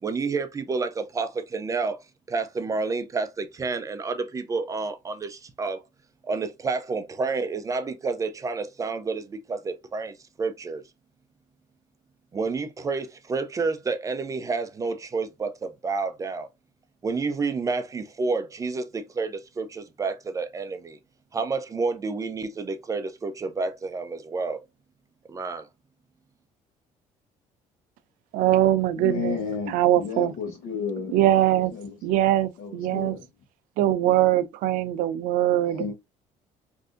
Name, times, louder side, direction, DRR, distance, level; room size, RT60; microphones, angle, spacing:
voice 1, 0.0-2.0 2.3-5.8 6.2-10.8 12.3-16.5 17.0-21.0 21.3-24.6 25.3-25.7, right 4 dB, 25° right, 0.4 m, -29 dB
voice 2, 28.3-29.4 29.7-30.3 31.1-31.7 32.0-33.2 33.8-35.8, right 13 dB, 80° right, 0.4 m, -22 dB
voice 3, 29.0-31.1 31.7-31.9 32.6-33.3 35.5-35.9, left 6 dB, 70° left, 1.0 m, -32 dB
3.4 x 2.6 x 2.4 m
cardioid pair, 125°, 14 cm